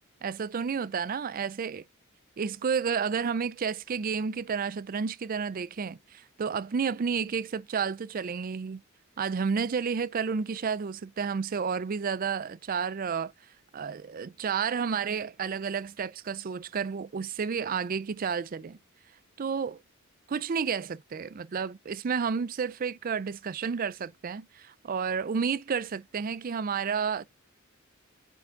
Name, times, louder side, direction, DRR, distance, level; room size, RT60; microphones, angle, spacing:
voice 1, 0.2-1.8 2.4-8.8 9.2-13.3 13.7-18.8 19.4-19.8 20.3-27.2, right 6 dB, 40° right, 0.4 m, -31 dB
9.2 x 3.4 x 3.8 m
head